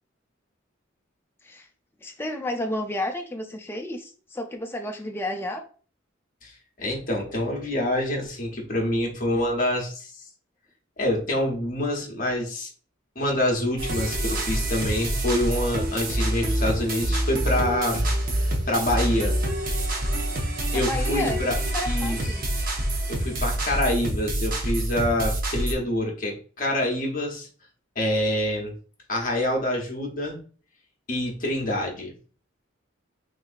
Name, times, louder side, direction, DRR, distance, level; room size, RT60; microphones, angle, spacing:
voice 1, 2.0-5.6 20.7-22.4, left 1 dB, 10° left, 4 dB, 0.4 m, -32 dB
voice 2, 6.4-10.2 11.0-12.7 13.2-18.0 18.3-19.3 20.7-21.6 21.8-22.2 23.1-27.5 28.0-28.7 29.1-30.4 31.1-32.1, left 1 dB, 40° left, 0 dB, 0.9 m, -26 dB
sound 1, 13.8-25.7, right 1 dB, 45° right, 0.7 m, -26 dB
sound 2, 14.7-20.6, left 1 dB, 15° right, 1.6 m, -42 dB
3.7 x 2.9 x 2.4 m, 0.40 s
head